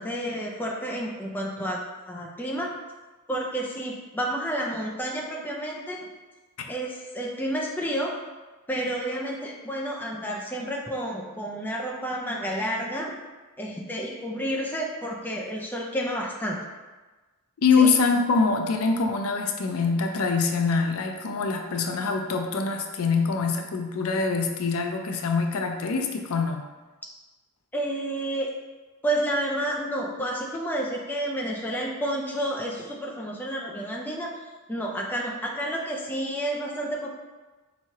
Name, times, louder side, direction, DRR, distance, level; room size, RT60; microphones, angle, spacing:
voice 1, 0.0-1.8 2.1-2.7 3.3-6.1 6.7-8.1 8.7-13.1 13.6-16.6 17.8-17.9 27.7-28.5 29.0-34.3 34.7-37.2, right 1 dB, 10° left, -2 dB, 0.4 m, -30 dB
voice 2, 17.6-26.6, left 4 dB, 80° left, 4 dB, 0.4 m, -24 dB
4.6 x 3.0 x 2.8 m, 1.2 s
head